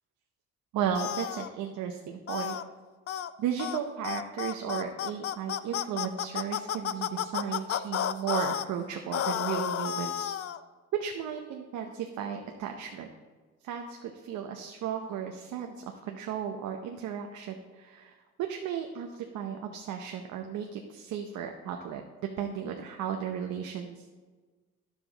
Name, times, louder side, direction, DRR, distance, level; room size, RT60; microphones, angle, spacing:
voice 1, 0.7-2.6 3.4-10.3 10.9-13.1 13.6-24.0, right 8 dB, 85° right, 3 dB, 0.8 m, -35 dB
sound 1, 0.9-1.5 2.3-2.6 3.1-3.3 3.6-3.8 4.0-8.7 9.1-10.6, left 10 dB, 50° left, 0.5 m, -32 dB
10.5 x 7.2 x 3.9 m, 1.4 s
cardioid pair, 90°, 30 cm